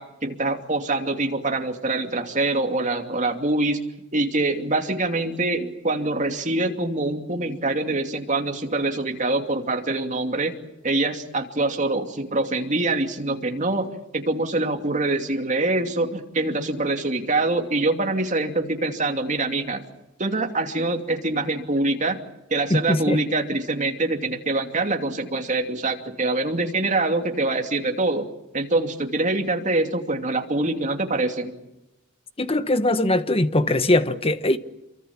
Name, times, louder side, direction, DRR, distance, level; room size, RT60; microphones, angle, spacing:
voice 1, 0.0-3.8 4.1-10.6 10.8-19.8 20.2-22.2 22.5-28.3 28.5-31.5, right 2 dB, 35° right, 2.7 m, -24 dB
voice 2, 22.7-23.2 32.4-34.6, left 1 dB, 30° left, 1.3 m, -21 dB
28.0 x 24.0 x 7.3 m
head